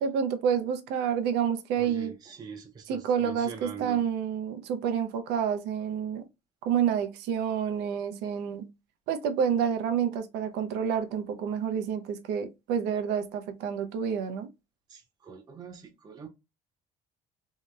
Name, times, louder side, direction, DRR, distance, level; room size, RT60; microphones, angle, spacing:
voice 1, 0.0-2.1 2.9-6.3 6.6-8.7 9.1-14.5, right 8 dB, 90° right, 0.5 m, -29 dB
voice 2, 1.8-4.0 14.9-16.3, right 6 dB, 25° right, 0.4 m, -43 dB
2.7 x 2.0 x 2.3 m
cardioid pair, 110°, 17 cm